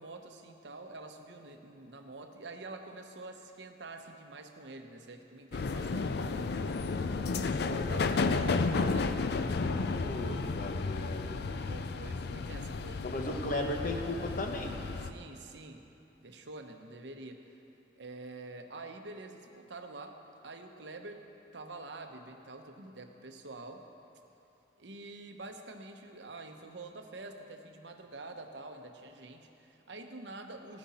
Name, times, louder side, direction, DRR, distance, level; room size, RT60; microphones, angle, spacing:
voice 1, 0.0-9.1 9.8-10.7 11.7-13.1 15.0-15.8 16.2-17.4 18.0-20.2 20.4-21.2 21.5-23.8 24.8-30.8, right 2 dB, 70° right, 5 dB, 0.9 m, -47 dB
sound 1, 5.5-15.1, left 4 dB, 65° left, 0.5 m, -32 dB
voice 2, 10.0-11.4 13.0-14.8, left 1 dB, 50° left, 3 dB, 1.1 m, -36 dB
16.0 x 9.6 x 4.3 m, 2.8 s
head